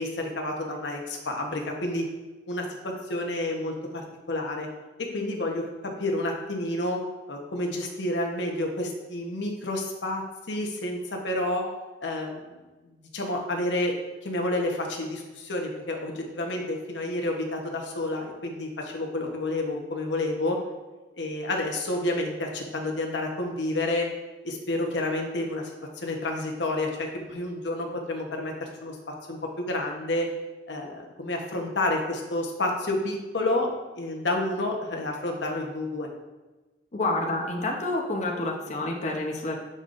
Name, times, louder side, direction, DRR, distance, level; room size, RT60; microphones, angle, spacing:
voice 1, 0.0-2.1 2.5-4.7 5.0-7.0 7.3-10.2 10.5-11.7 12.0-12.5 13.1-14.0 14.2-20.6 21.2-24.1 24.4-29.0 29.3-30.3 30.7-33.7 33.9-36.1, left 1 dB, 90° left, 1 dB, 1.0 m, -29 dB
voice 2, 36.9-39.6, left 2 dB, 40° left, 0 dB, 0.7 m, -28 dB
7.9 x 5.4 x 2.5 m, 1.2 s
head